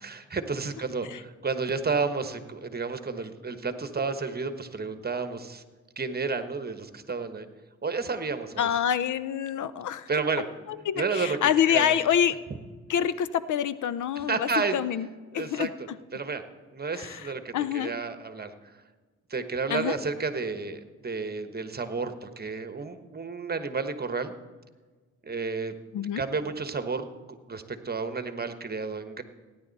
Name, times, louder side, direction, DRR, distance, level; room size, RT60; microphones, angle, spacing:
voice 1, 0.0-5.6 6.0-7.5 7.8-8.7 10.1-10.4 10.9-11.4 11.7-12.0 14.1-14.8 15.3-15.7 16.1-16.4 16.7-18.7 19.3-24.3 25.2-25.7 26.2-27.1 27.5-29.2, right 4 dB, 30° right, 9 dB, 1.2 m, -31 dB
voice 2, 8.6-10.1 10.9-12.3 12.9-15.1 15.3-15.7 16.9-17.2 17.5-17.9 19.7-20.0 25.9-26.2, left 9 dB, 70° left, 15 dB, 0.6 m, -26 dB
17.5 x 10.0 x 4.1 m, 1.4 s
cardioid pair, 65°, 31 cm